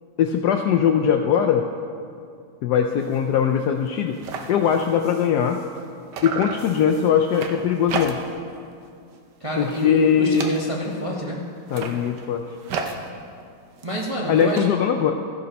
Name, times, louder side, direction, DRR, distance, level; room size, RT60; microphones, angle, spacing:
voice 1, 0.2-1.7 2.6-4.2 4.5-5.6 6.2-8.2 9.6-10.5 11.7-12.4 14.3-15.1, left 8 dB, 75° left, 4 dB, 1.0 m, -20 dB
sound 1, 3.0-3.2 3.6-3.7 3.9-5.9 6.1-8.5 8.8-9.2 9.5-11.0 11.6-14.6, right 5 dB, 65° right, 1.4 m, -34 dB
voice 2, 9.4-11.4 13.8-14.7, equal, 25° right, -3 dB, 0.7 m, -28 dB
14.0 x 6.8 x 5.2 m, 2.3 s
omnidirectional pair, 2.1 m